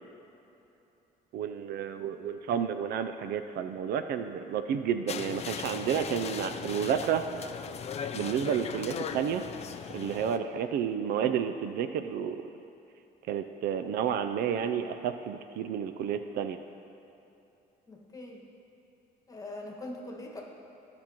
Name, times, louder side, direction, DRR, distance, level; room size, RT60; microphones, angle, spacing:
voice 1, 1.3-7.2 8.1-9.4 9.9-12.4 13.3-16.6, right 8 dB, 65° right, 9 dB, 0.4 m, -31 dB
sound 1, 5.1-10.4, left 7 dB, 40° left, 0.4 m, -38 dB
voice 2, 17.9-18.4 19.3-20.4, left 1 dB, 20° left, -2 dB, 1.6 m, -42 dB
14.5 x 6.0 x 2.9 m, 3.0 s
cardioid pair, 110°, 17 cm